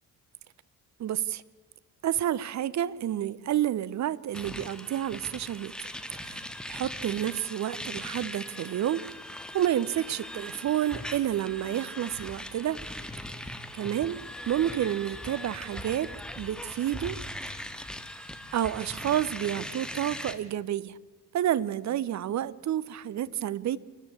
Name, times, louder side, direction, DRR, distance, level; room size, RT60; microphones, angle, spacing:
voice 1, 1.0-1.4 2.0-5.9 6.2-9.0 9.3-12.8 13.4-14.2 14.5-16.1 16.4-17.2 18.5-21.0 21.3-23.8, right 11 dB, 40° right, 0.7 m, -30 dB
sound 1, 4.3-20.3, left 1 dB, ahead, 1.6 m, -40 dB
27.5 x 12.0 x 8.6 m
figure-of-eight pair, 40°, 46 cm